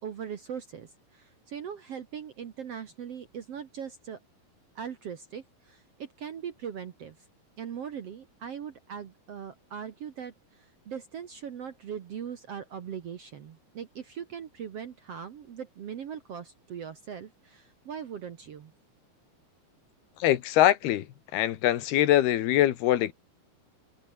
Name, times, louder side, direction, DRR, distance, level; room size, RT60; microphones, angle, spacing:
voice 1, 0.0-4.2 4.8-7.2 7.6-18.7, right 8 dB, 55° right, 1.8 m, -40 dB
voice 2, 20.2-21.1 21.3-23.1, left 13 dB, 80° left, 3.4 m, -23 dB
omnidirectional pair, 4.5 m